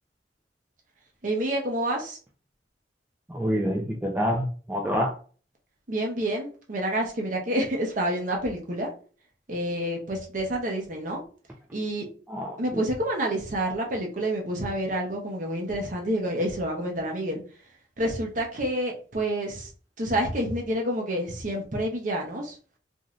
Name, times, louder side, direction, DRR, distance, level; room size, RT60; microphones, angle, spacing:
voice 1, 1.2-2.2 5.9-8.9 9.5-11.2 11.7-12.1 12.6-17.4 18.0-19.7 20.0-22.6, right 1 dB, 45° right, 1 dB, 0.7 m, -28 dB
voice 2, 3.3-5.1 12.3-12.8, equal, 10° right, -1 dB, 0.4 m, -27 dB
3.1 x 2.6 x 2.4 m, 0.39 s
head